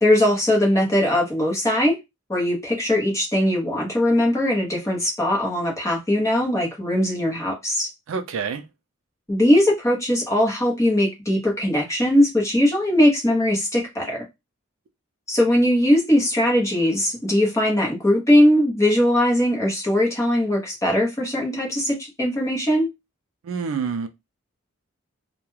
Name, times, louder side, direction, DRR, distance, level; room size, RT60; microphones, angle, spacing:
voice 1, 0.0-2.0 2.3-7.9 9.3-14.2 15.3-22.9, left 1 dB, 15° left, 0.7 m, -20 dB
voice 2, 8.1-8.6 23.4-24.1, right 5 dB, 70° right, 0.4 m, -27 dB
2.2 x 2.2 x 3.1 m
head